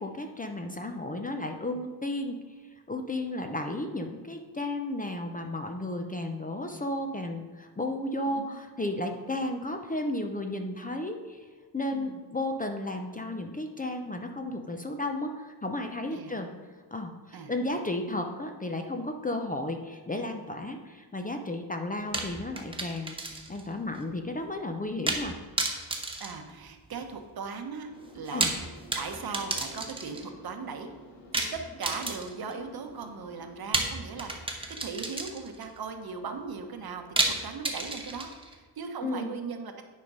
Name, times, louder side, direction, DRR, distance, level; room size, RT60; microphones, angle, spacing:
voice 1, 0.0-2.4 2.9-11.4 11.7-16.5 16.9-23.2 23.5-25.4 28.3-28.5 39.0-39.4, left 1 dB, 20° left, 5 dB, 0.6 m, -33 dB
voice 2, 11.9-12.2 16.1-16.3 17.3-17.5 26.2-27.9 28.1-28.7 28.9-30.9 31.3-39.9, right 5 dB, 55° right, 6 dB, 1.0 m, -38 dB
sound 1, 22.1-23.7 23.9-24.0 25.1-25.3 25.6-27.1 28.2-30.3 31.3-32.5 33.7-35.6 37.2-38.5, right 2 dB, 10° right, 0.9 m, -32 dB
sound 2, 27.9-33.6, equal, 80° left, 1.6 m, -51 dB
9.7 x 5.1 x 5.4 m, 1.4 s
wide cardioid pair, 160°, 43 cm